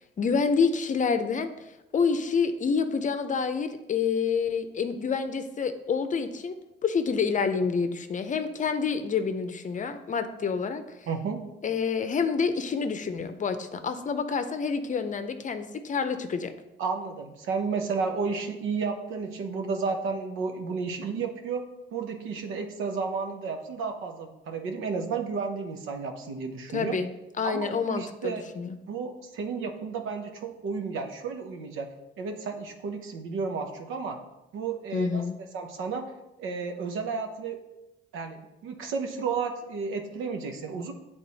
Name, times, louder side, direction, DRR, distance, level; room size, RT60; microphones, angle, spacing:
voice 1, 0.2-1.5 1.9-10.8 11.6-16.5 26.7-27.1 27.4-28.8 34.9-35.4, left 5 dB, 40° left, 9 dB, 0.6 m, -28 dB
voice 2, 11.1-11.4 16.8-21.6 21.9-27.0 27.4-28.4 28.9-31.9 32.2-34.2 34.5-35.2 35.5-36.1 36.4-37.6 38.1-40.9, right 5 dB, 90° right, 5 dB, 0.9 m, -32 dB
8.6 x 3.5 x 4.1 m, 0.96 s
cardioid pair, 90°, 20 cm